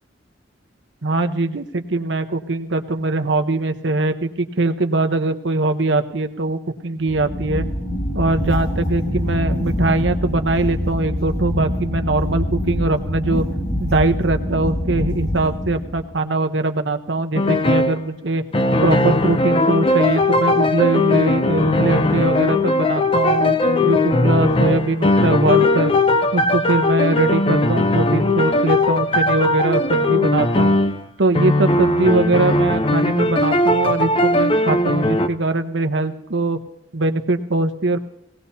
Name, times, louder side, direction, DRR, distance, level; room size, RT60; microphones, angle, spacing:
voice 1, 1.0-7.7 8.1-13.4 13.8-18.4 18.8-25.9 26.3-30.8 31.2-36.6 36.9-38.0, right 2 dB, 80° right, 7 dB, 0.9 m, -21 dB
sound 1, 7.0-16.1, left 1 dB, 65° left, 6.5 m, -24 dB
sound 2, 17.3-18.0 18.5-31.0 31.3-35.3, left 2 dB, 30° left, 0.6 m, -18 dB
18.5 x 17.5 x 2.8 m, 0.88 s
head